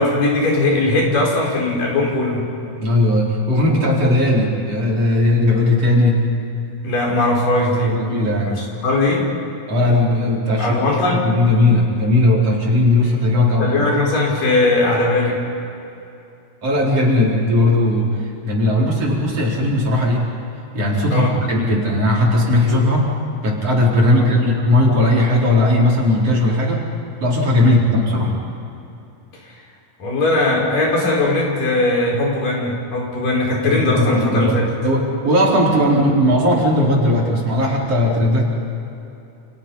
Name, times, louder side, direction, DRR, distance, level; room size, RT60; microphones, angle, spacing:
voice 1, 0.0-2.5 6.8-8.0 8.5-9.3 10.6-11.3 13.6-15.4 21.1-21.3 24.1-24.3 27.6-27.8 30.0-34.7, left 2 dB, 80° left, -1 dB, 6.7 m, -19 dB
voice 2, 2.8-6.2 7.8-8.6 9.7-10.8 11.2-13.7 16.6-18.1 18.4-20.3 20.7-23.1 23.4-26.9 27.2-28.4 33.6-38.5, left 1 dB, 45° right, -3 dB, 5.3 m, -17 dB
29.5 x 29.0 x 5.7 m, 2.8 s
omnidirectional pair, 3.8 m